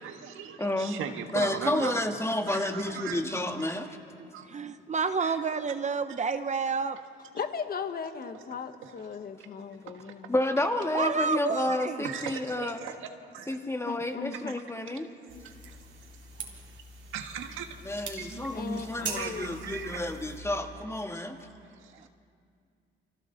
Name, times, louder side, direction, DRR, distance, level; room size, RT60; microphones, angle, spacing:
voice 1, 0.0-2.1 2.5-3.8 4.2-4.5 5.2-5.4 8.3-8.4 8.8-9.0 9.9-10.1 12.0-13.6 14.3-14.6 14.9-15.0 15.4-15.5 16.6-16.8 17.1-17.8 18.2-20.0 21.1-22.1, right 8 dB, 85° right, 6 dB, 1.6 m, -40 dB
voice 2, 0.6-1.0 1.3-4.0 10.3-12.8 13.5-15.1 17.8-21.4, left 1 dB, 15° left, 5 dB, 1.8 m, -30 dB
voice 3, 4.5-7.0 10.9-12.0 18.3-18.4, right 5 dB, 35° right, 10 dB, 0.7 m, -29 dB
voice 4, 7.3-10.3 11.5-11.6 13.6-14.6 14.9-15.0 15.3-15.5 18.5-19.5, left 6 dB, 50° left, 8 dB, 1.5 m, -38 dB
sound 1, 15.3-20.4, right 4 dB, 65° right, 3.4 m, -42 dB
30.0 x 24.5 x 4.0 m, 2.4 s
cardioid pair, 90°, 20 cm